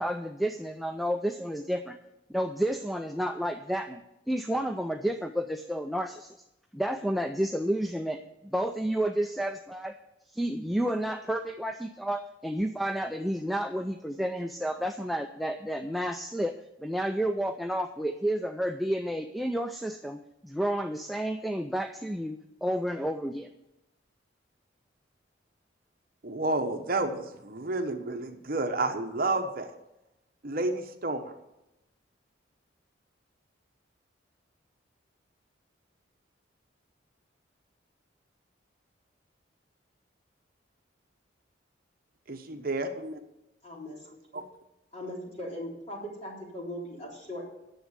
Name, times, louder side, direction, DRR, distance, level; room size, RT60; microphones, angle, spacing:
voice 1, 0.0-2.0 2.3-6.3 6.7-9.9 10.3-16.6 16.8-23.5, right 1 dB, ahead, 5 dB, 0.4 m, -31 dB
voice 2, 26.2-29.7 30.4-31.3 42.3-43.2 44.3-44.5, right 2 dB, 50° right, 5 dB, 1.0 m, -30 dB
voice 3, 43.6-44.1 44.3-44.4 44.9-47.4, left 1 dB, 35° left, -3 dB, 3.8 m, -39 dB
10.5 x 7.3 x 8.1 m, 0.91 s
head